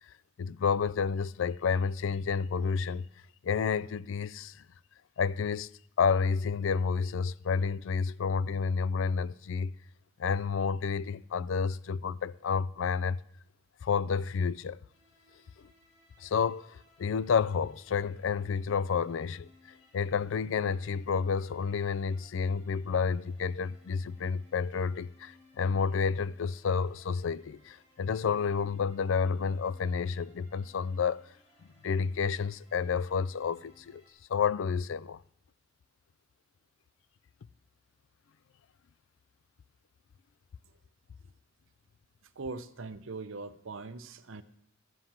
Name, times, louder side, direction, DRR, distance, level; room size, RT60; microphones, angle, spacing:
voice 1, 0.1-3.1 3.4-4.6 5.2-5.7 6.0-9.7 10.2-13.2 13.8-14.8 16.2-31.2 31.8-34.0 34.3-35.2, left 5 dB, 70° left, 0.4 m, -30 dB
sound 1, 14.9-34.1, left 1 dB, 35° left, 3.4 m, -63 dB
voice 2, 42.4-44.4, right 3 dB, 75° right, 0.8 m, -41 dB
13.0 x 7.8 x 7.3 m
head